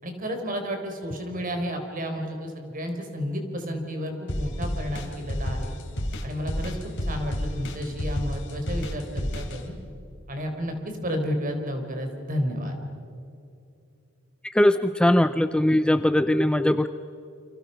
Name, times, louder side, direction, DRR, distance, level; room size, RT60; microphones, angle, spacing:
voice 1, 0.0-5.7 6.2-9.7 10.3-12.7, equal, 40° right, 5 dB, 4.1 m, -31 dB
sound 1, 4.3-9.6, equal, 60° left, 3.4 m, -30 dB
voice 2, 14.5-16.9, left 1 dB, 5° left, 11 dB, 0.5 m, -20 dB
29.0 x 26.0 x 5.7 m, 2.7 s
head